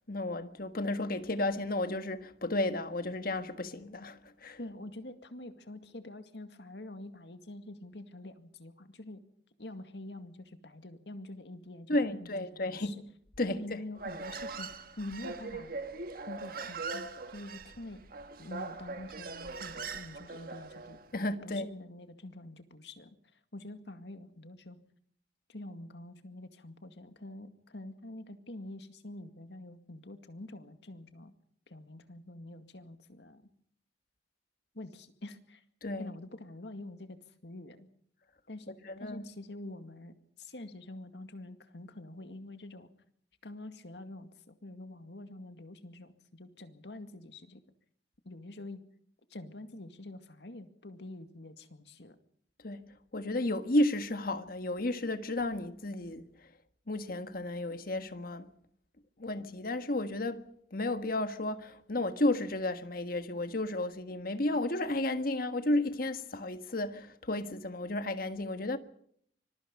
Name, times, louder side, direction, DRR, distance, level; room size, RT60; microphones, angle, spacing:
voice 1, 0.1-4.6 11.9-13.0 13.4-13.6 21.1-21.7 35.8-36.1 38.8-39.2 52.6-52.9 53.1-56.3 56.9-58.5 59.2-60.4 60.7-68.8, left 1 dB, 55° left, 1.5 m, -32 dB
voice 2, 4.6-9.2 9.6-12.3 12.6-13.0 13.5-14.7 15.0-15.8 16.3-18.0 18.4-21.0 21.2-24.8 25.5-31.3 31.7-33.4 34.7-35.6 36.0-37.9 38.5-42.9 43.4-47.6 48.3-48.8 49.3-52.2, left 1 dB, 75° left, 2.1 m, -46 dB
Human voice, 13.9-21.0, right 4 dB, 55° right, 1.5 m, -41 dB
25.0 x 21.5 x 5.4 m
head